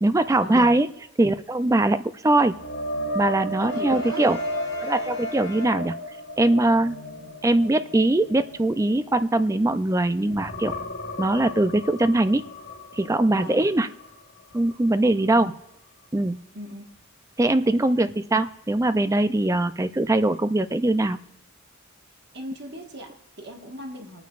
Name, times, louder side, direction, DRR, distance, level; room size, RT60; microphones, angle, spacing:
voice 1, 0.0-0.9 1.2-2.5 3.1-4.4 4.8-5.9 6.4-7.0 7.4-10.7 11.2-12.4 12.9-13.9 14.5-15.5 16.1-16.4 17.4-21.2, right 2 dB, 15° right, 11 dB, 0.4 m, -21 dB
sound 1, 2.5-9.9 10.3-14.1 14.5-14.7 18.1-18.2, left 1 dB, 75° left, 2.8 m, -34 dB
Brass instrument, 3.6-6.3, left 3 dB, 20° left, 4.2 m, -42 dB
voice 2, 3.6-4.3 13.3-13.7 15.3-15.5 16.5-16.8 22.3-24.2, equal, 50° right, 2 dB, 1.6 m, -39 dB
26.5 x 9.2 x 2.5 m, 0.85 s
head